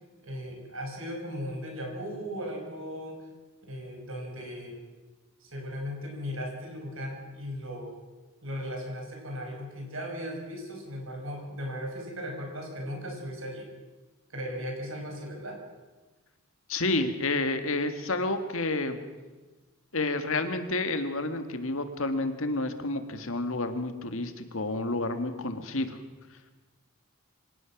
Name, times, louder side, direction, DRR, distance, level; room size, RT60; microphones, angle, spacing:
voice 1, 0.2-3.2 3.6-4.8 5.4-7.9 8.4-13.7 14.3-15.6, equal, 65° right, 2 dB, 5.6 m, -37 dB
voice 2, 16.7-19.0 19.9-26.0, left 2 dB, 65° left, 8 dB, 1.8 m, -30 dB
25.5 x 17.5 x 6.0 m, 1.2 s
head